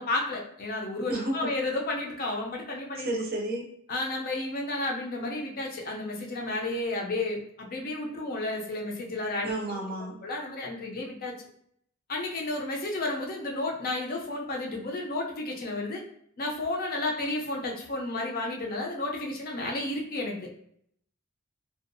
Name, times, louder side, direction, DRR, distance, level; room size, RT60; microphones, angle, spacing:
voice 1, 0.0-3.1 3.9-9.5 10.2-11.3 12.1-16.0 16.4-20.4, left 2 dB, 45° left, 0 dB, 0.5 m, -32 dB
voice 2, 1.1-1.5 3.0-3.7 9.4-10.2, right 1 dB, 45° right, 1 dB, 0.5 m, -31 dB
2.6 x 2.3 x 2.6 m, 0.68 s
head